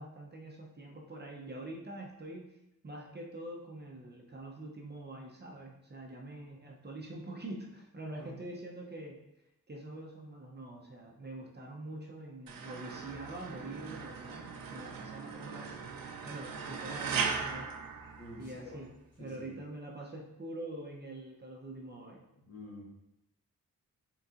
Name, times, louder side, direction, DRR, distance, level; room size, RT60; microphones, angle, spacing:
voice 1, 0.0-2.6 2.8-9.2 9.7-15.8 16.2-17.7 18.4-18.9 19.2-22.2, right 1 dB, 30° right, 0 dB, 0.6 m, -45 dB
sound 1, 12.5-18.8, right 5 dB, 85° right, 0.5 m, -39 dB
voice 2, 18.2-18.8 19.2-19.5 22.5-22.9, left 1 dB, 45° left, -2 dB, 1.1 m, -48 dB
4.2 x 3.8 x 2.4 m, 0.87 s
cardioid pair, 70°, 34 cm